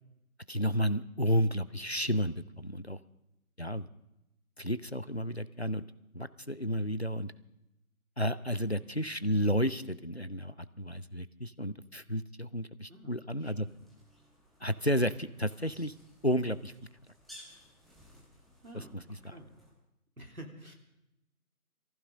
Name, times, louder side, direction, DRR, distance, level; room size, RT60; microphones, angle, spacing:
voice 1, 0.5-3.0 3.6-3.9 4.6-5.8 6.1-7.3 8.2-13.7 14.6-15.9 16.2-16.7 18.7-18.8 19.2-19.4, equal, 45° left, 15 dB, 0.6 m, -32 dB
sound 1, 13.6-19.7, equal, ahead, 1.1 m, -58 dB
voice 2, 18.6-19.5 20.2-20.7, right 1 dB, 75° right, 1 dB, 3.5 m, -49 dB
25.0 x 15.0 x 3.7 m, 0.89 s
figure-of-eight pair, 175°, 44 cm